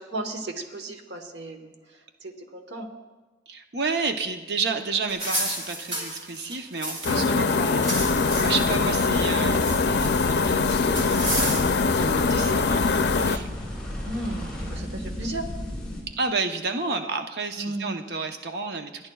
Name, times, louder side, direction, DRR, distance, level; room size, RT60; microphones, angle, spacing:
voice 1, 0.1-1.7 2.2-2.9 7.1-7.4 14.0-15.4 17.6-18.0, right 2 dB, 90° right, 5 dB, 1.2 m, -34 dB
voice 2, 3.5-8.1 8.4-11.2 12.0-13.5 16.2-19.1, right 4 dB, 70° right, 6 dB, 0.8 m, -31 dB
sound 1, 5.1-7.3 7.6-8.8 9.2-10.3 10.9-11.9, right 1 dB, 35° right, 2.7 m, -31 dB
sound 2, 7.0-13.4, left 4 dB, 70° left, 0.5 m, -23 dB
sound 3, 8.0-16.0, left 1 dB, 5° left, 3.1 m, -34 dB
30.0 x 10.5 x 2.3 m, 1.3 s
head